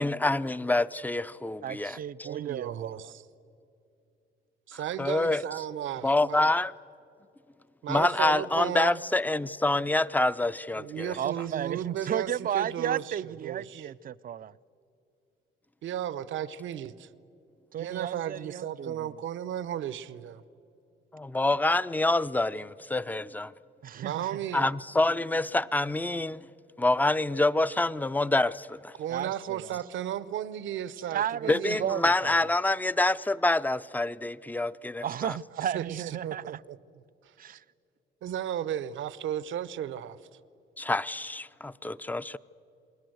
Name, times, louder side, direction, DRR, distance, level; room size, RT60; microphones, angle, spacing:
voice 1, 0.0-2.3 5.0-5.4 6.0-6.7 7.9-11.2 21.1-23.5 24.5-26.5 26.8-28.9 31.5-35.4 40.8-42.4, left 2 dB, 10° left, 0.5 m, -27 dB
voice 2, 1.6-3.1 11.2-14.5 17.7-19.2 23.8-24.3 29.1-29.7 31.1-32.5 35.0-36.6 37.4-37.6, right 9 dB, 45° right, 0.5 m, -34 dB
voice 3, 2.2-3.3 4.7-6.4 7.8-9.0 10.8-13.9 15.8-17.1 17.8-20.4 23.9-24.7 29.0-31.8 35.7-37.0 38.2-40.2, right 10 dB, 75° right, 0.9 m, -35 dB
28.5 x 21.0 x 7.9 m
cardioid pair, 90°, 20 cm